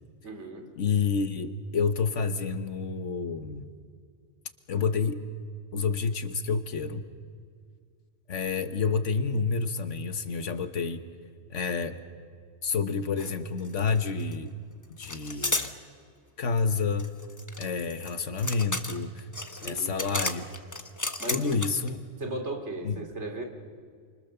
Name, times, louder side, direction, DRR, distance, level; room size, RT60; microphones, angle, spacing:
voice 1, 0.2-0.7 17.6-17.8 19.6-20.2 21.2-21.5 22.2-23.4, right 2 dB, 65° right, 4 dB, 3.2 m, -37 dB
voice 2, 0.8-3.7 4.7-5.3 5.7-7.0 8.3-11.0 11.5-12.0 12.6-14.5 15.0-15.7 16.4-17.1 17.6-19.3 19.6-20.4 21.3-22.0 22.8-23.1, left 5 dB, 80° left, 9 dB, 1.6 m, -29 dB
sound 1, 13.2-13.3 13.6-14.3 15.0-15.7 17.0-21.9, left 2 dB, 15° left, 1.2 m, -33 dB
29.0 x 26.5 x 7.0 m, 2.1 s
omnidirectional pair, 1.2 m